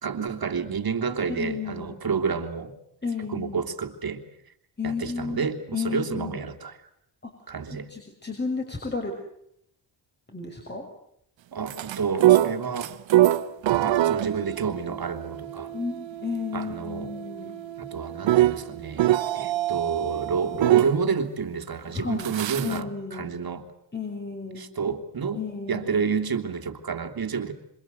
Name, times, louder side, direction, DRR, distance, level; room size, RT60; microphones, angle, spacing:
voice 1, 0.0-2.7 3.3-4.2 4.8-6.8 7.5-7.9 11.5-12.9 13.8-15.7 16.5-17.1 17.8-23.6 24.6-25.4 25.7-27.5, right 5 dB, 55° right, 5 dB, 3.1 m, -29 dB
voice 2, 1.3-1.9 3.0-3.6 4.8-6.4 7.2-7.3 7.9-9.1 10.3-10.8 15.7-17.6 21.9-22.3 22.6-23.4 23.9-24.6 25.3-25.9, left 5 dB, 25° left, 1 dB, 6.2 m, -32 dB
sound 1, 11.7-21.0 22.2-22.8, right 14 dB, 90° right, 1.1 m, -24 dB
27.0 x 26.5 x 8.1 m, 0.73 s
cardioid pair, 80°, 44 cm